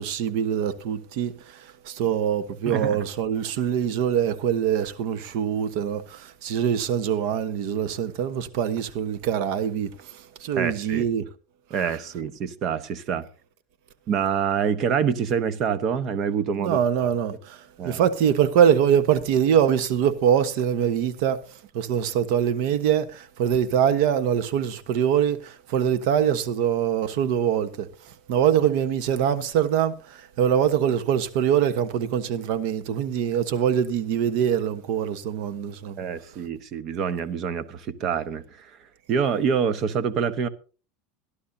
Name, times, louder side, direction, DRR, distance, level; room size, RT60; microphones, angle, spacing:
voice 1, 0.0-11.3 16.6-36.0, right 9 dB, 60° right, 1.1 m, -24 dB
voice 2, 2.7-3.0 10.5-11.1 11.7-13.3 14.1-16.8 17.8-18.0 36.0-38.7 39.1-40.5, right 7 dB, 40° right, 1.1 m, -26 dB
21.5 x 11.5 x 2.8 m
supercardioid pair, 145°, 0 cm